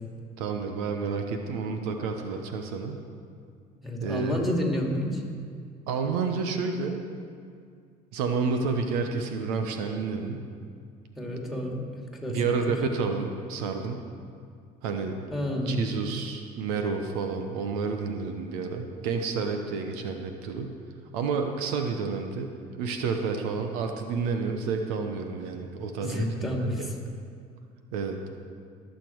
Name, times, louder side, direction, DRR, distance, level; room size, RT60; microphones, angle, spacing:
voice 1, 0.4-3.0 4.0-4.4 5.9-7.0 8.1-10.5 12.3-14.0 14.8-15.2 15.7-20.7 21.1-26.9 27.9-28.2, right 5 dB, 85° right, 5 dB, 1.0 m, -30 dB
voice 2, 3.8-5.2 11.2-11.8 12.1-12.4 12.7-12.8 15.3-15.8 26.0-26.9, equal, ahead, 0 dB, 2.7 m, -29 dB
19.0 x 6.9 x 4.7 m, 2.3 s
supercardioid pair, 75°, 19 cm